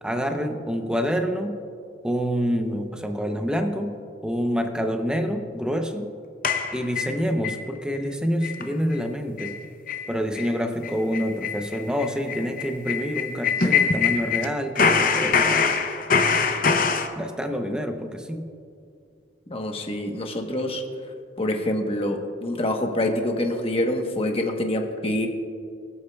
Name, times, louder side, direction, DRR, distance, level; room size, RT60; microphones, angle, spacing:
voice 1, 0.0-1.6 2.0-4.0 4.2-6.1 6.7-9.6 10.1-15.7 17.1-18.5, equal, 5° right, 5 dB, 0.7 m, -27 dB
sound 1, 6.4-7.6 8.0-8.1 8.4-8.6 8.9-9.0 9.4-9.6 9.9-10.1 10.3-10.5 10.8-14.5 14.8-17.1, left 5 dB, 45° left, 0.7 m, -23 dB
voice 2, 19.5-20.8 21.4-25.3, left 1 dB, 30° left, 3 dB, 1.1 m, -26 dB
24.5 x 8.4 x 2.3 m, 2.4 s
head